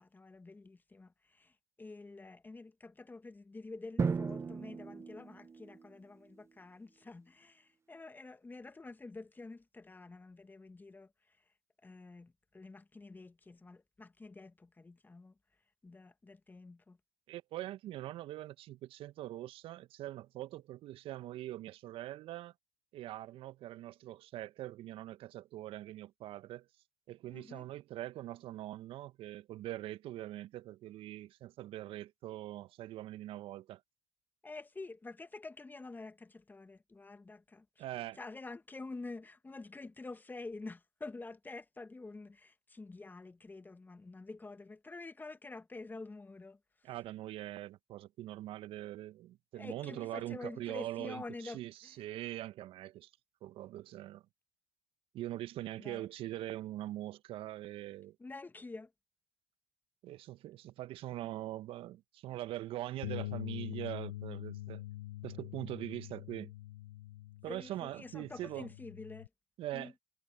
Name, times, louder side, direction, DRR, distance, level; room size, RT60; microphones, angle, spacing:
voice 1, 0.0-11.1 11.8-15.3 15.8-17.0 27.3-27.7 34.4-37.8 38.2-46.6 49.5-51.9 55.8-56.1 58.2-58.9 67.5-69.3 69.7-69.9, left 3 dB, 15° left, 1.6 m, -48 dB
Drum, 4.0-5.9, right 5 dB, 25° right, 0.9 m, -36 dB
voice 2, 17.3-22.5 22.9-26.7 27.1-33.8 37.8-38.2 46.8-53.1 53.4-54.2 55.1-58.2 60.0-64.8 65.2-66.5 67.4-68.7 69.6-69.9, right 14 dB, 55° right, 1.4 m, -43 dB
Bass guitar, 63.0-69.3, left 16 dB, 75° left, 0.9 m, -44 dB
hypercardioid pair, 65°, 11 cm